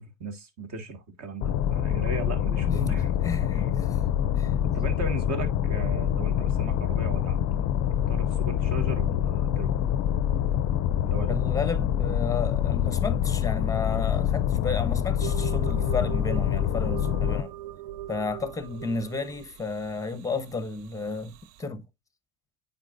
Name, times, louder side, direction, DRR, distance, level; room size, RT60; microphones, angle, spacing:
voice 1, 0.0-3.1 3.4-3.7 4.7-7.4 8.1-9.8 11.0-11.4, right 3 dB, 40° right, 1.8 m, -37 dB
sound 1, 1.4-17.4, left 10 dB, 40° left, 0.5 m, -26 dB
voice 2, 2.7-4.0 4.4-4.5 11.3-17.5 18.1-21.8, left 4 dB, 10° left, 0.8 m, -32 dB
sound 2, 15.2-21.6, right 13 dB, 65° right, 0.5 m, -40 dB
8.9 x 4.3 x 2.5 m
supercardioid pair, 100°, 41 cm